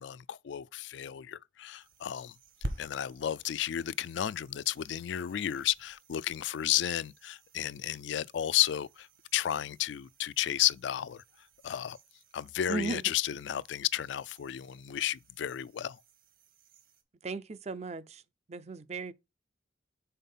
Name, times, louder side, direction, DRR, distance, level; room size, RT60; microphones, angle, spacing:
voice 1, 0.0-2.3 2.8-9.1 9.3-11.2 11.6-12.0 12.3-16.0, left 12 dB, 70° left, 0.3 m, -32 dB
sound 1, 1.8-17.0, right 1 dB, 50° right, 1.2 m, -50 dB
voice 2, 12.7-13.0 17.2-18.2 18.5-19.1, right 3 dB, 35° right, 0.4 m, -36 dB
5.6 x 4.0 x 5.4 m
head